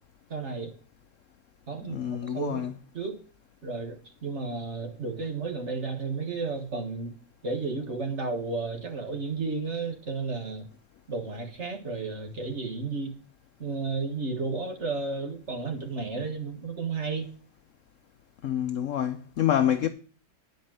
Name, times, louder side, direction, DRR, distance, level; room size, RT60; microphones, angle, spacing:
voice 1, 0.3-0.7 1.7-2.7 2.9-3.2 3.6-7.1 7.4-10.7 11.1-13.1 13.6-17.3, right 4 dB, 40° right, 1.5 m, -33 dB
voice 2, 1.8-2.7 18.4-19.9, left 10 dB, 75° left, 0.7 m, -27 dB
10.0 x 5.1 x 7.5 m
omnidirectional pair, 2.0 m